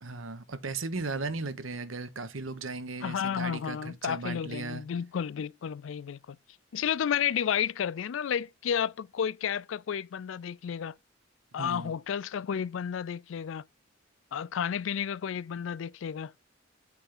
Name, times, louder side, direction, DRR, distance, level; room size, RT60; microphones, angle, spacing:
voice 1, 0.0-4.8 11.6-11.9, right 3 dB, 80° right, 1.1 m, -36 dB
voice 2, 3.0-6.4 6.7-11.0 11.5-13.6 14.3-16.3, left 8 dB, 70° left, 0.4 m, -32 dB
8.3 x 3.5 x 5.9 m
head